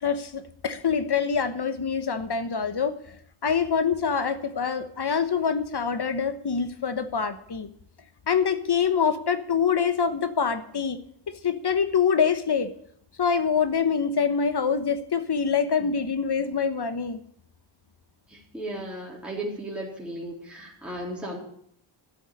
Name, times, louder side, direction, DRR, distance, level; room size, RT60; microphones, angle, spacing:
voice 1, 0.0-3.0 3.4-7.7 8.3-11.0 11.4-12.7 13.2-17.2, left 6 dB, 55° left, 11 dB, 1.3 m, -25 dB
voice 2, 18.3-21.4, right 1 dB, ahead, -4 dB, 3.8 m, -35 dB
12.5 x 7.2 x 9.8 m, 0.67 s
wide cardioid pair, 85°, 48 cm